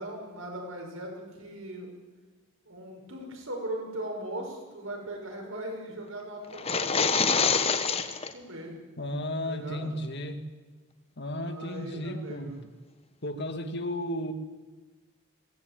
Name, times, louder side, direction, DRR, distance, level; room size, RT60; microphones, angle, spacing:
voice 1, 0.0-1.9 2.6-7.5 8.3-8.8 9.4-9.9 11.4-12.6, right 1 dB, 65° right, 1 dB, 6.5 m, -39 dB
sound 1, 6.5-8.3, left 5 dB, 25° left, 1.2 m, -25 dB
voice 2, 9.0-10.5 11.2-12.7 13.2-14.3, left 1 dB, 50° left, 8 dB, 2.0 m, -34 dB
22.0 x 17.5 x 9.2 m, 1.3 s
head